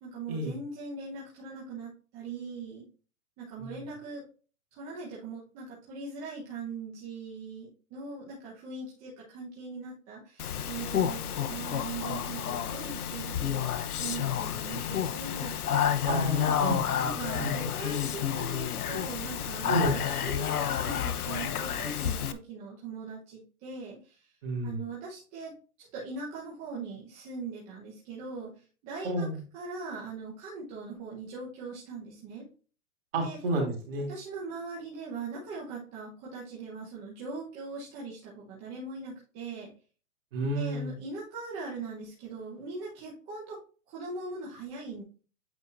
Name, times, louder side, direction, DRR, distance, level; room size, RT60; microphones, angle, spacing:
voice 1, 0.0-2.8 3.4-4.2 4.7-13.6 14.0-15.5 16.3-16.6 17.0-24.3 24.6-25.5 25.8-28.5 28.8-29.3 29.5-32.5 33.1-33.4 34.1-39.7 40.5-43.6 43.9-45.0, right 4 dB, 15° right, -6 dB, 1.0 m, -40 dB
Speech, 10.4-22.3, left 9 dB, 80° left, 0.9 m, -30 dB
voice 2, 16.1-17.6 19.7-19.9 24.4-24.8 29.0-29.4 33.1-34.1 40.3-40.9, right 1 dB, 40° right, -1 dB, 3.0 m, -31 dB
8.5 x 5.0 x 2.6 m, 0.38 s
hypercardioid pair, 165°, 44 cm